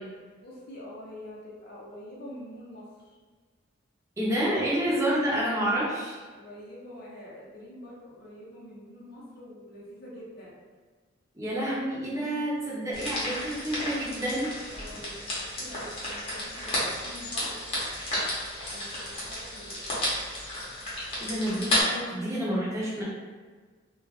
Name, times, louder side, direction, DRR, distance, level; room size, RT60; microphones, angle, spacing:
voice 1, 0.4-3.1 6.3-10.5 14.7-17.6 18.7-19.8, equal, 55° left, -6 dB, 0.6 m, -45 dB
voice 2, 4.2-6.2 11.4-14.5 21.2-23.0, right 1 dB, 15° right, -7 dB, 0.7 m, -29 dB
sound 1, 12.9-21.8, left 1 dB, 30° left, 0.9 m, -32 dB
2.5 x 2.3 x 3.3 m, 1.4 s
head